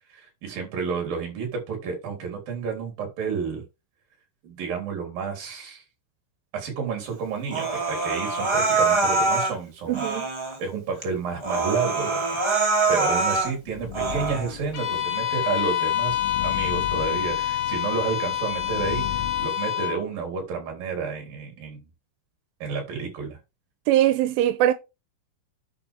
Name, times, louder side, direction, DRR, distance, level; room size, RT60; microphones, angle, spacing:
voice 1, 0.1-3.6 4.4-5.8 6.5-10.1 10.6-12.4 12.9-21.9 22.6-23.4, right 5 dB, 50° right, 4.9 m, -31 dB
Human voice, 7.5-9.5 9.9-10.6 11.0-11.1 11.4-13.5 13.9-14.5, right 3 dB, 15° right, 1.0 m, -24 dB
voice 2, 9.9-10.3 23.9-24.7, right 13 dB, 85° right, 3.1 m, -21 dB
sound 1, 13.0-19.5, left 10 dB, 80° left, 3.1 m, -37 dB
Bowed string instrument, 14.7-20.0, left 11 dB, 60° left, 2.8 m, -26 dB
11.0 x 6.1 x 3.6 m
omnidirectional pair, 5.6 m